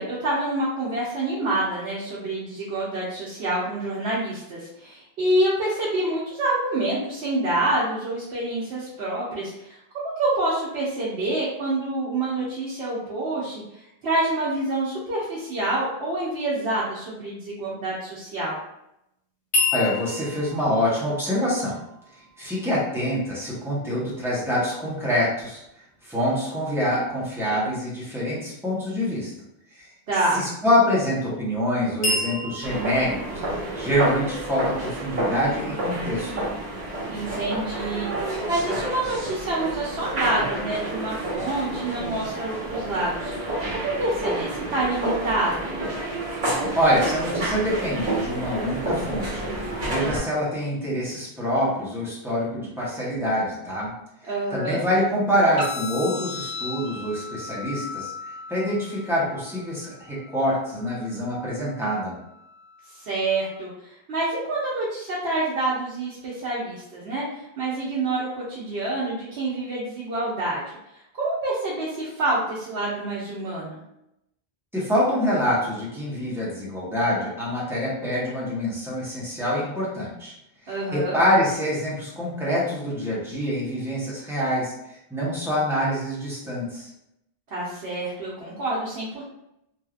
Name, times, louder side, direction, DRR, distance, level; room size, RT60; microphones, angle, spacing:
voice 1, 0.0-9.8 10.0-18.6 30.1-30.4 37.1-38.1 38.4-45.7 54.3-54.8 62.9-70.7 71.2-73.8 80.7-81.2 87.5-89.2, right 2 dB, 85° right, -7 dB, 1.0 m, -27 dB
sound 1, 19.5-23.6 32.0-35.8, left 2 dB, 70° left, 1.1 m, -31 dB
voice 2, 19.7-21.8 22.4-25.6 26.0-29.3 29.7-29.9 30.3-36.5 46.7-53.9 54.5-58.1 58.5-62.2 74.7-80.3 80.7-84.7 85.1-86.9, equal, 5° right, -8 dB, 0.9 m, -25 dB
sound 2, 32.6-50.2, right 1 dB, 50° right, 1.1 m, -29 dB
sound 3, 55.6-63.6, left 4 dB, 45° left, 0.9 m, -38 dB
3.2 x 2.6 x 2.4 m, 0.83 s
omnidirectional pair, 1.1 m